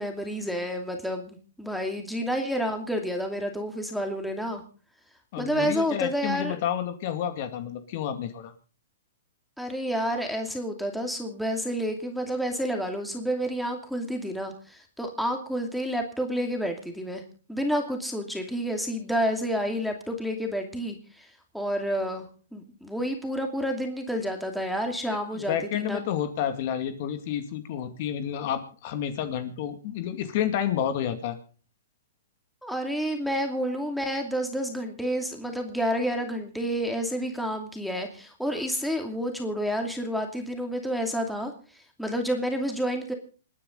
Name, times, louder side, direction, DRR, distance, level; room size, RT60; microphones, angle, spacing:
voice 1, 0.0-4.6 5.4-6.5 9.6-17.2 17.5-21.3 21.5-22.3 22.5-26.0 32.6-41.5 42.0-43.1, equal, ahead, 3 dB, 2.6 m, -29 dB
voice 2, 5.3-8.5 25.3-31.4, left 9 dB, 50° left, 8 dB, 2.3 m, -30 dB
28.0 x 9.8 x 3.9 m, 0.38 s
hypercardioid pair, 145°, 0 cm